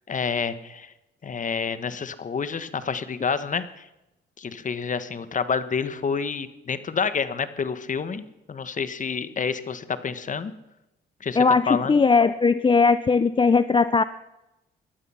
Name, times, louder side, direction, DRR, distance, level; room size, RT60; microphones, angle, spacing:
voice 1, 0.1-0.9 1.2-3.8 4.4-10.5 11.2-12.0, left 6 dB, 40° left, 13 dB, 1.4 m, -28 dB
voice 2, 11.4-14.0, left 4 dB, 25° left, 14 dB, 0.6 m, -19 dB
19.0 x 12.0 x 5.8 m, 0.92 s
cardioid pair, 90°, 20 cm